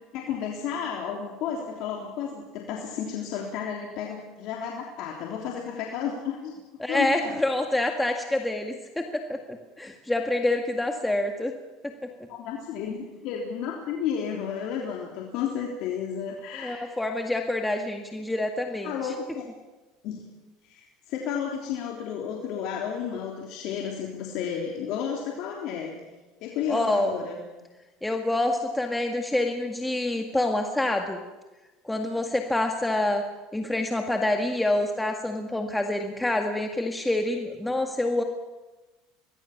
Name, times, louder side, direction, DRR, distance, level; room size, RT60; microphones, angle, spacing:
voice 1, 0.1-6.5 6.9-7.4 12.3-16.9 18.8-19.5 20.0-20.3 20.6-25.9 26.4-27.4, left 7 dB, 65° left, 0 dB, 3.4 m, -32 dB
voice 2, 6.8-11.5 11.8-11.9 16.6-19.1 26.7-27.1 28.0-31.2 31.8-33.2 33.5-38.2, left 1 dB, 10° left, 4 dB, 1.9 m, -27 dB
24.5 x 20.0 x 7.3 m, 1.2 s
supercardioid pair, 100°, 0 cm